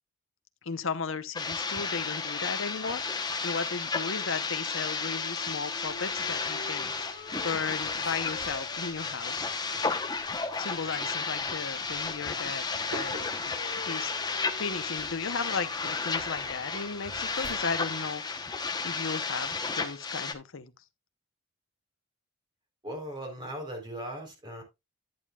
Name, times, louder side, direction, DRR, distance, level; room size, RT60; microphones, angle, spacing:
voice 1, 0.6-3.0 3.4-6.9 7.4-9.5 10.6-18.2 18.8-20.7, left 5 dB, 65° left, 0.9 m, -35 dB
sound 1, 1.3-20.3, left 4 dB, 20° left, 1.0 m, -33 dB
sound 2, 4.6-15.8 17.5-17.9, left 3 dB, 40° left, 1.0 m, -48 dB
sound 3, 5.9-19.5, right 1 dB, 55° right, 4.8 m, -50 dB
voice 2, 22.8-24.6, right 1 dB, 20° right, 3.9 m, -38 dB
10.5 x 9.2 x 2.4 m
head